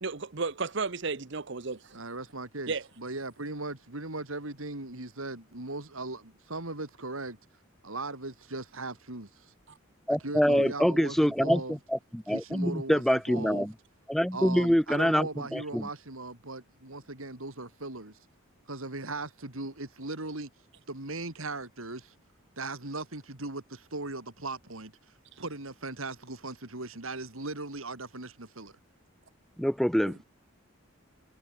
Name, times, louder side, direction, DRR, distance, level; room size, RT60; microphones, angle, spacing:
voice 1, 0.0-2.0 2.7-2.8, right 4 dB, 60° right, 1.0 m, -33 dB
voice 2, 1.9-7.4 7.8-9.5 10.1-11.8 12.3-13.7 14.3-18.2 18.7-20.5 20.9-22.1 22.6-24.9 25.4-28.7, right 2 dB, 80° right, 3.8 m, -38 dB
voice 3, 10.1-13.7 14.1-15.9 29.6-30.2, equal, ahead, 0.3 m, -26 dB
head